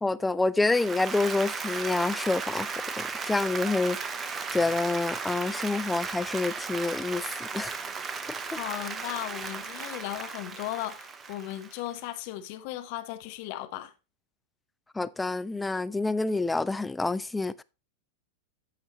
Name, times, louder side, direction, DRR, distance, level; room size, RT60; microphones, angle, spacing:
voice 1, 0.0-2.7 3.0-7.7 8.5-8.6 15.0-17.6, left 3 dB, 10° left, 0.4 m, -28 dB
Applause, 0.6-12.0, right 5 dB, 20° right, 0.8 m, -36 dB
voice 2, 8.6-13.9, left 14 dB, 45° left, 1.0 m, -36 dB
14.0 x 4.9 x 3.1 m
figure-of-eight pair, 90°, 0 cm